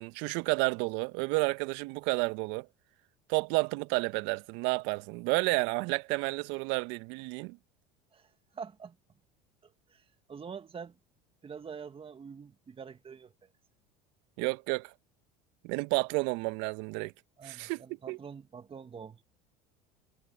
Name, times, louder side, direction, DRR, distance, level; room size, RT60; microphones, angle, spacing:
voice 1, 0.0-2.7 3.3-7.6 14.4-14.9 15.6-17.1 17.4-18.2, right 25 dB, 65° right, 1.4 m, -31 dB
voice 2, 8.5-9.0 9.9-10.0 10.3-10.9 11.4-13.3 17.4-19.2, right 6 dB, 25° right, 1.9 m, -45 dB
hypercardioid pair, 80°, 20 cm